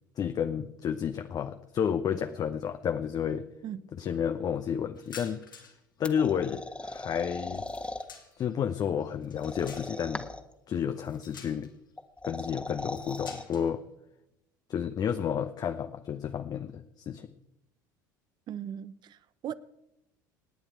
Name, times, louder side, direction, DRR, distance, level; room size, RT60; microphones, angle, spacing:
voice 1, 0.2-3.5 4.0-5.4 6.0-7.6 8.4-10.3 10.7-11.7 12.2-13.8 14.7-17.3, left 8 dB, 35° left, 8 dB, 0.8 m, -31 dB
voice 2, 3.6-4.1 18.5-19.5, right 9 dB, 45° right, 16 dB, 0.9 m, -39 dB
sound 1, 5.0-5.9 6.1-8.5 9.0-10.2 10.9-11.9 12.7-13.7, left 6 dB, 85° left, 2.9 m, -50 dB
sound 2, 6.0-8.0 9.4-10.5 12.0-13.4, left 2 dB, 10° left, 1.5 m, -38 dB
27.5 x 9.9 x 4.6 m, 0.87 s
figure-of-eight pair, 65°, 11 cm